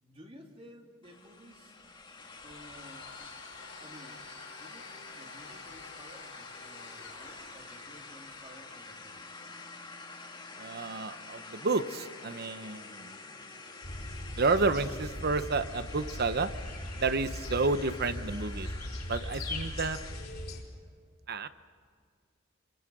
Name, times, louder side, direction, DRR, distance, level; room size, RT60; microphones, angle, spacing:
voice 1, 0.0-1.8 2.4-3.1 3.8-9.5, equal, 30° right, 1 dB, 2.5 m, -54 dB
sound 1, 1.0-20.3, left 3 dB, 25° left, 1.9 m, -48 dB
Domestic sounds home sounds, 2.2-8.1, left 4 dB, 90° left, 5.7 m, -51 dB
voice 2, 10.6-13.2 14.4-16.5 17.0-18.7 19.1-20.0 21.3-21.5, right 3 dB, 50° right, 12 dB, 0.9 m, -30 dB
sound 2, 13.8-20.6, left 1 dB, 50° left, 4.2 m, -39 dB
26.0 x 24.0 x 6.2 m, 2.1 s
head